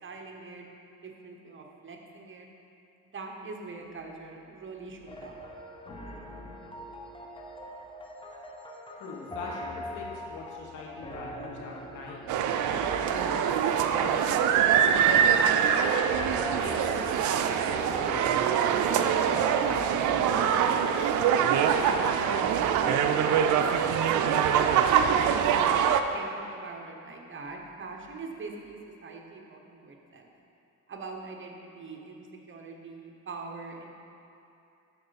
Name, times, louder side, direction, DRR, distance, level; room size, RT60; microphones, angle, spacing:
voice 1, 0.0-0.7 1.0-2.5 3.0-5.4 24.2-25.5 26.1-30.3 30.9-33.9, right 3 dB, 40° right, 1 dB, 1.0 m, -43 dB
sound 1, 5.1-20.6, left 1 dB, 15° left, 0.8 m, -43 dB
voice 2, 9.0-12.3 13.0-14.4 14.9-15.8 16.6-21.0 21.8-23.4, left 3 dB, 80° left, -2 dB, 1.4 m, -42 dB
sound 2, 12.3-26.0, right 8 dB, 75° right, 0.5 m, -24 dB
12.0 x 4.4 x 4.1 m, 2.7 s
cardioid pair, 90°, 30 cm